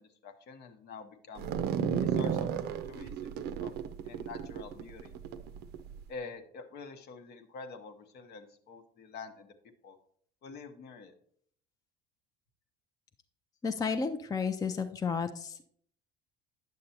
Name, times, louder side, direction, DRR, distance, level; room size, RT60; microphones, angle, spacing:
voice 1, 0.0-1.5 2.0-2.5 2.9-3.8 4.0-5.1 6.1-9.5 9.8-10.0 10.4-11.1, left 4 dB, 55° left, 7 dB, 0.9 m, -47 dB
sound 1, 1.4-6.0, right 8 dB, 60° right, 0.5 m, -33 dB
voice 2, 13.6-15.6, left 5 dB, 20° left, 7 dB, 0.5 m, -32 dB
9.2 x 6.5 x 2.8 m, 0.62 s
supercardioid pair, 90°, 19 cm